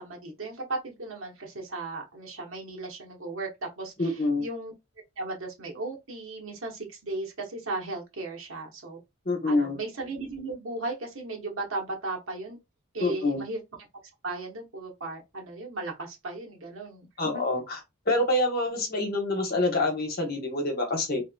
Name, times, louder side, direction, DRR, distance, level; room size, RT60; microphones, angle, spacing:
voice 1, 0.0-4.7 5.2-9.0 9.5-12.6 12.9-13.6 14.2-17.4, right 2 dB, 80° right, 1.3 m, -36 dB
voice 2, 4.0-4.4 9.2-9.8 13.0-13.4 17.2-17.8 18.1-21.2, left 2 dB, 50° left, 1.2 m, -26 dB
3.4 x 2.9 x 2.3 m
head